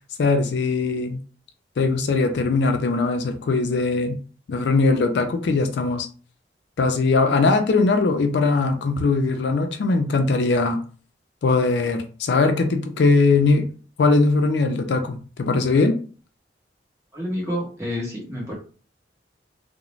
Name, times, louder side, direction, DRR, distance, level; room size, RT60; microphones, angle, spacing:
voice 1, 0.2-1.2 1.8-4.2 4.5-6.1 6.8-10.8 11.4-13.7 14.0-16.0, left 3 dB, 70° left, 0.4 m, -20 dB
voice 2, 17.1-18.5, left 1 dB, 15° right, 1.0 m, -29 dB
2.4 x 2.0 x 3.0 m
head